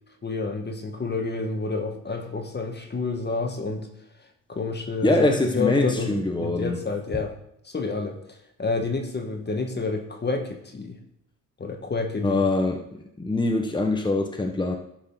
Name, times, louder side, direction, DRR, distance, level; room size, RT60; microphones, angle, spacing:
voice 1, 0.2-3.9 4.5-7.3 7.6-11.0 11.6-12.5, left 3 dB, 30° left, 5 dB, 1.9 m, -29 dB
voice 2, 5.0-6.8 12.2-14.7, left 2 dB, 15° left, 3 dB, 1.4 m, -24 dB
12.0 x 4.8 x 5.8 m, 0.75 s
cardioid pair, 75°, 33 cm